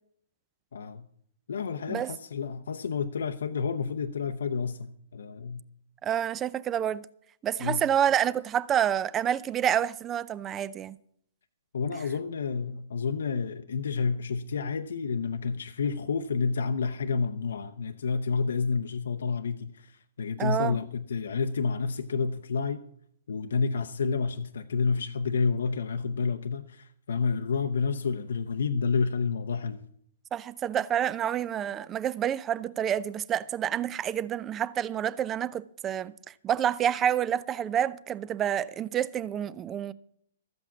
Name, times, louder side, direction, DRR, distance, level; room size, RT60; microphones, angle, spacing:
voice 1, 0.7-1.1 1.5-5.6 7.6-7.8 11.7-22.8 23.3-29.8, left 5 dB, 70° left, 0.7 m, -29 dB
voice 2, 6.0-7.1 7.4-10.9 20.4-20.8 30.3-36.1 36.4-39.9, right 9 dB, 20° right, 0.5 m, -28 dB
13.5 x 7.9 x 7.1 m
figure-of-eight pair, 120°, 0 cm